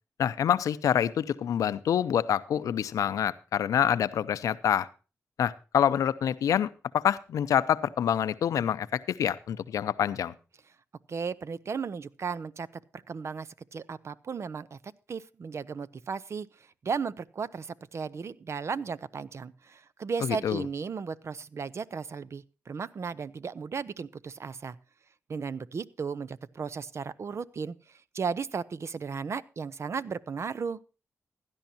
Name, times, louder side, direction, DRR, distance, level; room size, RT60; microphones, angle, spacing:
voice 1, 0.2-4.9 5.4-10.3 20.2-20.6, left 9 dB, 90° left, 15 dB, 0.6 m, -26 dB
voice 2, 11.1-12.7 13.1-14.8 15.1-16.5 16.8-24.8 25.3-27.8 28.1-30.8, right 5 dB, 55° right, 17 dB, 0.7 m, -35 dB
16.5 x 11.5 x 2.8 m, 0.33 s
cardioid pair, 65°, 6 cm